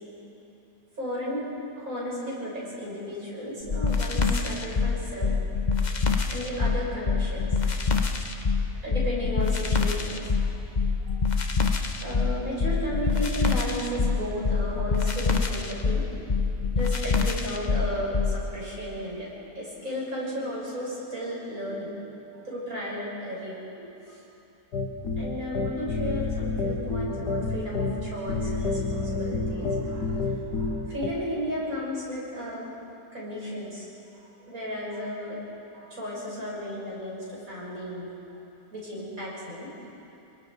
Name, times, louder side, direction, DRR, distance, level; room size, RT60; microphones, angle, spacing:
voice 1, 1.0-1.5 1.8-5.3 6.3-7.5 8.0-8.4 8.8-10.5 11.0-11.2 12.0-19.3 19.5-22.0 22.4-24.2 25.2-32.7 33.1-33.9 34.2-35.5 35.7-38.1 38.7-39.7, equal, 55° right, -5 dB, 6.7 m, -34 dB
sound 1, 3.7-18.4, left 4 dB, 30° left, 0.9 m, -25 dB
sound 2, 24.7-31.1, left 3 dB, 80° left, 1.8 m, -29 dB
29.5 x 20.5 x 4.8 m, 2.8 s
omnidirectional pair, 1.8 m